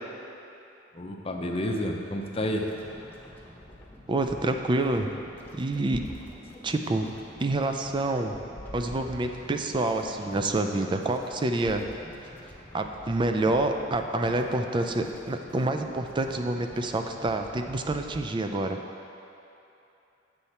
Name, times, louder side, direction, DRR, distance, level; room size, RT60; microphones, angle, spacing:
voice 1, 0.9-2.7, left 1 dB, 30° left, 1 dB, 0.7 m, -30 dB
sound 1, 2.2-18.3, left 1 dB, 10° left, 1.0 m, -48 dB
voice 2, 4.1-5.1 5.5-6.0 6.6-7.1 7.4-8.3 8.7-11.8 12.7-18.8, right 2 dB, 25° right, 5 dB, 0.4 m, -27 dB
sound 2, 5.9-6.3 7.8-7.9 8.9-9.3 9.8-9.9 10.5-10.6 11.6-12.0, equal, 40° right, 1.4 m, -43 dB
8.2 x 6.9 x 4.3 m, 2.8 s
head